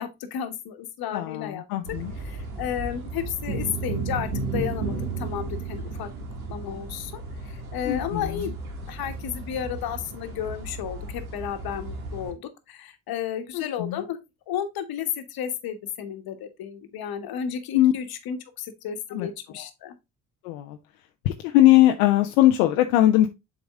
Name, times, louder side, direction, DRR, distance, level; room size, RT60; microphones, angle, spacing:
voice 1, 0.0-1.6 2.2-6.1 6.5-8.5 8.9-14.2 14.5-20.0, left 9 dB, 60° left, 1.3 m, -33 dB
voice 2, 1.1-2.1 7.8-8.5 13.5-14.0 17.7-17.9 19.1-19.3 19.6-19.7 20.4-20.8 21.2-23.3, left 14 dB, 80° left, 0.7 m, -20 dB
sound 1, 1.8-12.3, right 3 dB, 85° right, 1.8 m, -34 dB
7.2 x 3.9 x 3.5 m
hypercardioid pair, 60°, 42 cm